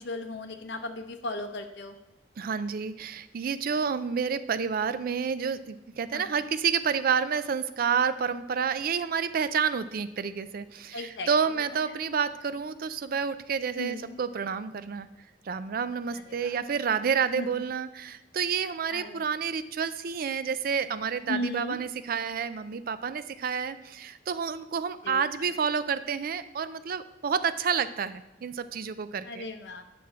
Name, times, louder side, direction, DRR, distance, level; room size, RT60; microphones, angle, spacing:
voice 1, 0.0-1.9 6.1-6.3 10.9-11.3 13.8-14.2 16.4-16.5 17.4-17.5 18.9-19.2 21.3-21.8 25.0-25.2 29.2-29.8, left 2 dB, 75° left, 5 dB, 0.7 m, -35 dB
voice 2, 2.4-15.1 15.4-29.5, right 6 dB, 55° right, 13 dB, 0.4 m, -29 dB
9.3 x 5.9 x 3.7 m, 0.94 s
head